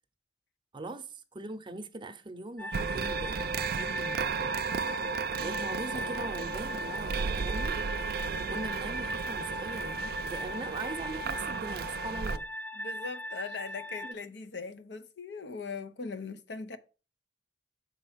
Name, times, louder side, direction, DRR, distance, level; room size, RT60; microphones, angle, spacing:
voice 1, 0.7-4.6 5.4-7.8 8.4-12.5 14.0-14.1, right 2 dB, 25° right, 0.7 m, -41 dB
sound 1, 2.6-14.1, left 1 dB, 10° left, 0.3 m, -39 dB
sound 2, 2.7-12.4, right 6 dB, 55° right, 0.4 m, -34 dB
voice 2, 12.8-16.8, left 4 dB, 70° left, 0.7 m, -40 dB
6.9 x 4.4 x 5.8 m
head